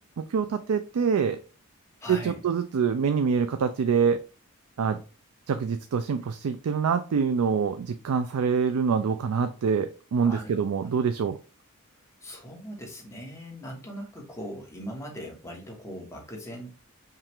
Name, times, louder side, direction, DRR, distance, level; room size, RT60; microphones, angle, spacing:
voice 1, 0.3-1.4 2.1-4.2 4.8-5.0 5.5-11.4, right 6 dB, 75° right, 9 dB, 0.4 m, -25 dB
voice 2, 2.0-2.4 10.2-10.6 12.2-16.7, equal, 15° left, 0 dB, 1.2 m, -40 dB
5.4 x 2.4 x 3.5 m, 0.35 s
head